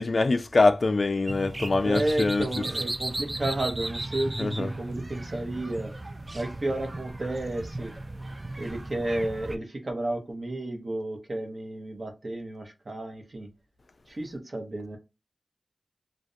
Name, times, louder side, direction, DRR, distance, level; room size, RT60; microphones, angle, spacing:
voice 1, 0.0-2.5 4.4-4.7, left 3 dB, 60° left, 0.3 m, -24 dB
sound 1, 1.3-9.6, right 2 dB, 35° right, 0.4 m, -36 dB
voice 2, 1.8-5.9 6.3-7.9 8.6-13.5 14.1-15.0, right 1 dB, 55° right, 0.8 m, -32 dB
2.5 x 2.1 x 2.5 m
cardioid pair, 45°, 0 cm